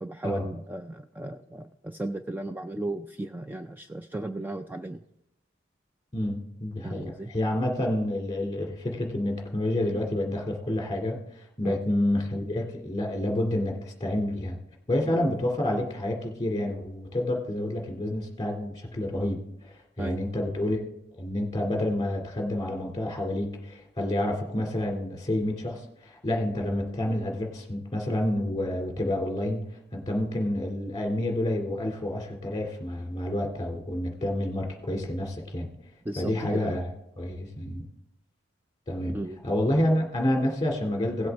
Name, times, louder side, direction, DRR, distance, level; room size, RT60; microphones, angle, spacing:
voice 1, 0.0-5.0 6.8-7.3 11.6-11.8 15.2-15.3 20.0-20.2 36.0-36.8 39.1-39.4, right 2 dB, 10° right, 7 dB, 0.3 m, -35 dB
voice 2, 6.1-14.6 14.9-20.9 21.2-35.7 36.2-36.9 37.2-37.9 38.9-39.2 39.4-41.3, left 1 dB, 20° left, 1 dB, 2.3 m, -29 dB
17.0 x 7.8 x 3.4 m, 0.80 s
head